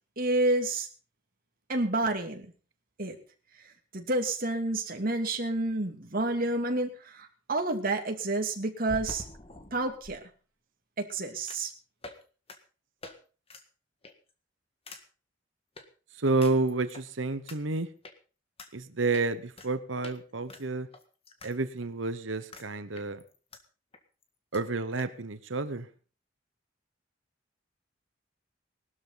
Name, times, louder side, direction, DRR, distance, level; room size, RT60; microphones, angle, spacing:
voice 1, 0.2-0.9 1.7-2.5 3.0-3.2 3.9-9.2 9.7-10.2 11.0-11.7, right 2 dB, 50° right, 2.7 m, -29 dB
sound 1, 8.8-10.2 11.5-11.7 12.0-12.2 12.5-12.6 13.0-13.1 13.5-13.6 14.0-14.3 14.9-15.0 15.8-15.9 16.4-17.0 17.5-17.6 18.0-18.1 18.6-18.7 19.1-19.7 20.0-20.2 20.5-21.5 21.8-21.9 22.5-22.7 23.0-23.6 23.9-24.0 24.2-24.3 24.5-24.6 25.0-25.1, left 2 dB, 30° left, 1.8 m, -45 dB
voice 2, 16.2-17.9 18.7-20.9 21.4-23.2 24.5-25.9, right 3 dB, 75° right, 1.1 m, -30 dB
20.0 x 12.5 x 4.0 m
head